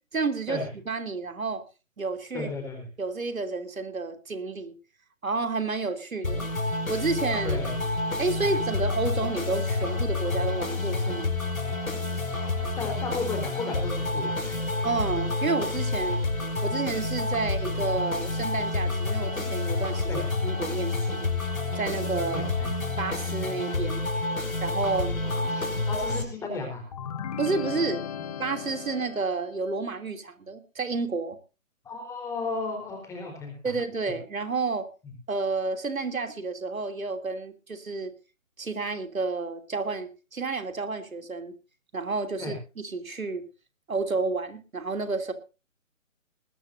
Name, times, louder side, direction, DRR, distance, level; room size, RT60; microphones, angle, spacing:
voice 1, 0.1-1.6 2.0-2.5 3.0-4.7 5.2-6.5 6.9-7.6 8.2-11.3 14.8-16.2 16.6-21.3 21.7-22.4 23.0-24.0 24.6-25.1 27.4-28.0 28.4-31.4 33.6-34.9 35.3-38.1 38.6-41.5 41.9-43.4 43.9-45.3, right 4 dB, 80° right, 8 dB, 3.2 m, -30 dB
voice 2, 2.3-2.9 7.4-7.7 8.4-8.5 12.8-14.6 20.1-20.2 22.3-22.7 25.2-26.8 28.1-28.2 31.8-33.5 42.4-42.5, left 3 dB, 5° left, 3 dB, 4.1 m, -34 dB
sound 1, 6.2-26.2, left 2 dB, 80° left, 4.8 m, -29 dB
sound 2, 26.9-29.7, left 8 dB, 30° left, 1.3 m, -36 dB
20.5 x 14.0 x 2.7 m, 0.32 s
figure-of-eight pair, 155°, 41 cm